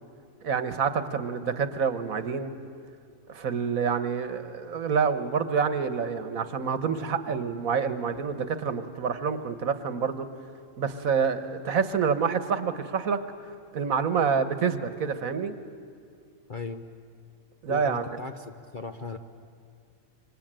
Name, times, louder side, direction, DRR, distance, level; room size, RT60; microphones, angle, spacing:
voice 1, 0.4-2.5 3.3-10.3 10.8-13.2 13.7-15.6 17.6-18.0, right 6 dB, 65° right, 11 dB, 1.5 m, -27 dB
voice 2, 16.5-16.8 17.7-19.2, left 3 dB, 40° left, 6 dB, 0.8 m, -37 dB
26.5 x 24.5 x 9.0 m, 2.2 s
omnidirectional pair, 1.6 m